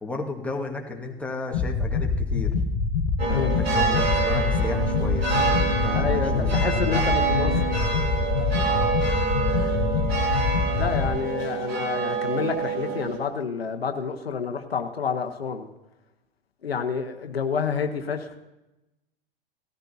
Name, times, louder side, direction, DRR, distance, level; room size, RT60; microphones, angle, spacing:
voice 1, 0.0-2.5 3.3-6.5 6.8-7.0 8.6-9.0, left 3 dB, 5° left, 0 dB, 1.7 m, -34 dB
sound 1, 1.5-11.1, left 4 dB, 55° left, 1.3 m, -25 dB
sound 2, 3.2-13.2, right 4 dB, 85° right, 2.9 m, -27 dB
voice 2, 5.9-7.6 10.7-15.7 16.6-18.4, left 6 dB, 85° left, 6 dB, 1.1 m, -29 dB
17.5 x 13.5 x 2.8 m, 0.96 s
figure-of-eight pair, 95°, 30 cm